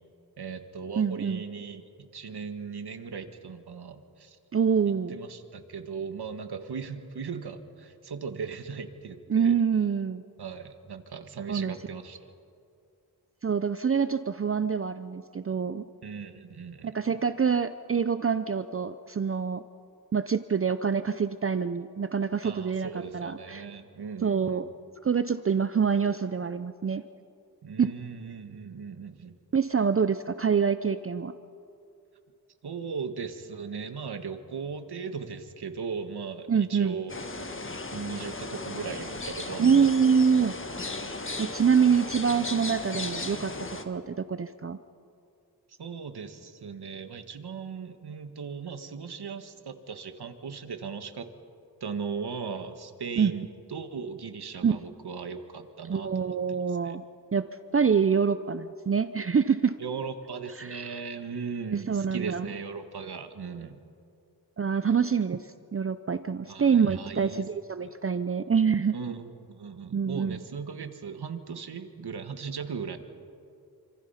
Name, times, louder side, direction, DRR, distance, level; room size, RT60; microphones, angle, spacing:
voice 1, 0.4-4.4 5.1-9.6 10.4-12.3 16.0-17.2 22.4-24.7 27.6-29.3 32.6-37.1 37.9-39.9 45.8-51.3 51.8-56.6 56.8-57.0 59.8-63.8 66.5-67.4 67.8-67.9 68.9-73.0, right 5 dB, 75° right, 8 dB, 1.7 m, -38 dB
voice 2, 1.0-1.4 4.5-5.1 9.3-10.2 11.5-11.7 13.4-15.9 16.8-19.6 20.1-23.6 24.2-24.6 25.0-27.0 27.8-27.9 29.5-31.3 36.5-37.0 39.6-40.5 41.4-43.5 43.8-44.8 53.2-53.3 54.6-54.8 55.9-57.0 57.3-57.4 57.7-59.8 60.6-61.0 61.7-62.5 64.6-65.4 65.7-69.0 69.9-70.4, right 6 dB, 35° right, 12 dB, 0.6 m, -26 dB
sound 1, 37.1-43.8, left 2 dB, 30° left, 1.6 m, -36 dB
28.0 x 26.0 x 5.8 m, 2.5 s
wide cardioid pair, 105°, 39 cm